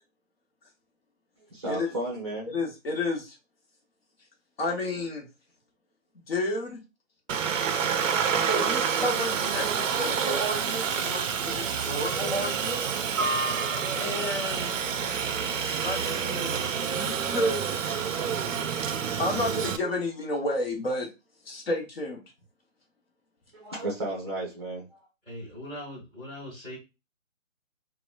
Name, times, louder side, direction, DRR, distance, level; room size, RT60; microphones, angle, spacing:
voice 1, 1.5-2.6 23.5-24.8, right 1 dB, 20° right, -5 dB, 0.5 m, -33 dB
voice 2, 2.5-3.4 4.6-5.3 6.3-6.8 8.4-12.8 14.0-14.8 15.8-16.6 16.8-18.0 19.2-21.1 21.4-22.2, left 1 dB, 50° left, 1 dB, 0.9 m, -31 dB
Aircraft, 7.3-19.8, right 6 dB, 70° right, 0.5 m, -28 dB
voice 3, 25.2-26.8, left 1 dB, 5° left, -9 dB, 0.9 m, -40 dB
2.8 x 2.1 x 2.3 m, 0.27 s
figure-of-eight pair, 150°, 40 cm